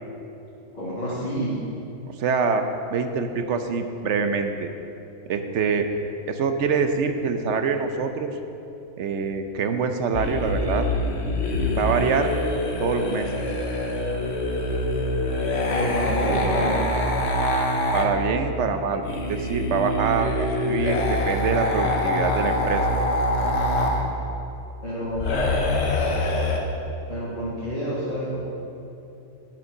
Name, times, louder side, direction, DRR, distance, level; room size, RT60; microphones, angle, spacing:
voice 1, 0.7-1.6 15.7-17.0 24.8-25.3 27.1-28.4, equal, 35° left, -9 dB, 1.9 m, -28 dB
voice 2, 2.2-2.6 2.9-4.7 5.3-5.9 6.3-8.3 9.0-10.8 11.7-12.3 12.8-13.3 17.9-22.8, right 5 dB, 70° right, 7 dB, 1.0 m, -25 dB
sound 1, 10.1-18.1 19.0-24.0 25.2-26.6, left 1 dB, 60° left, 1.3 m, -24 dB
9.8 x 7.5 x 5.4 m, 2.8 s
omnidirectional pair, 1.3 m